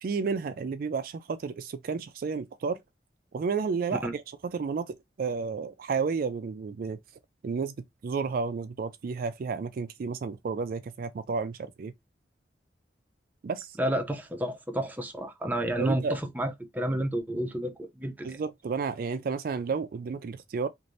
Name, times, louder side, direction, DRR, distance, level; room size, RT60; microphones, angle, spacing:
voice 1, 0.0-2.8 3.3-7.0 7.4-7.7 8.0-11.9 13.4-13.8 15.8-16.2 18.2-20.7, right 5 dB, 55° right, 0.3 m, -31 dB
voice 2, 13.8-18.4, right 1 dB, 10° right, 0.6 m, -30 dB
3.1 x 2.5 x 2.6 m
head